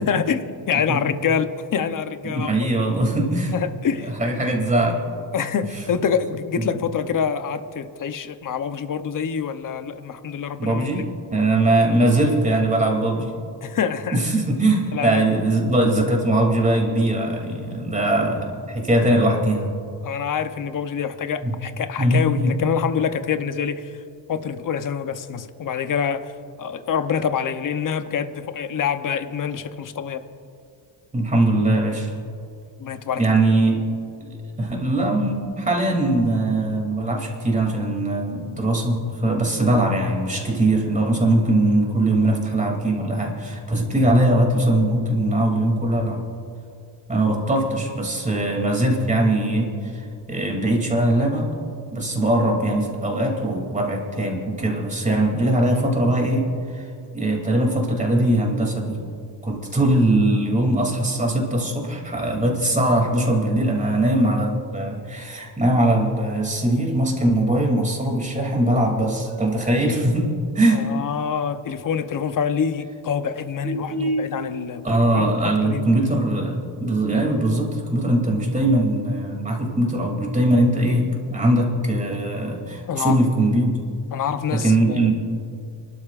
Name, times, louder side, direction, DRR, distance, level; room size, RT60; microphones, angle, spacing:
voice 1, 0.0-2.5 3.5-4.1 5.3-10.9 13.6-14.2 14.9-15.2 20.0-24.0 24.3-26.3 26.6-30.2 32.8-33.2 70.7-75.9 82.9-83.2 84.1-85.1, left 7 dB, 40° left, 9 dB, 0.8 m, -26 dB
voice 2, 2.2-3.5 4.1-5.0 6.6-6.7 10.6-13.4 14.1-19.7 21.4-21.5 22.0-22.6 31.1-32.1 33.2-33.8 34.2-46.2 47.1-51.5 51.9-56.9 57.1-59.0 59.4-70.9 73.6-74.3 74.8-83.7 84.5-85.1, right 1 dB, 15° right, 1 dB, 2.8 m, -21 dB
30.0 x 12.5 x 2.5 m, 2.5 s
cardioid pair, 130°, 48 cm